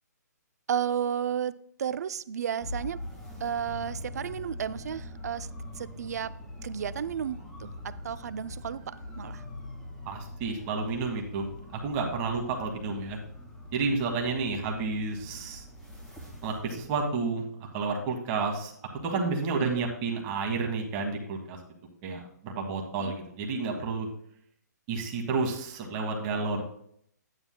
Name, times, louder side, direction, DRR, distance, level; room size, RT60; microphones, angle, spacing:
voice 1, 0.7-3.0 3.4-5.5 5.8-6.3 6.6-9.4 19.6-19.8 23.0-23.2, right 8 dB, 65° right, 0.5 m, -33 dB
sound 1, 2.6-17.0, left 1 dB, 10° left, 1.7 m, -43 dB
voice 2, 10.0-11.4 11.7-13.2 13.7-15.6 16.4-18.7 19.0-21.6 22.0-24.1 24.9-26.6, right 4 dB, 25° right, 1.6 m, -30 dB
11.0 x 9.5 x 2.3 m
hypercardioid pair, 160°, 10 cm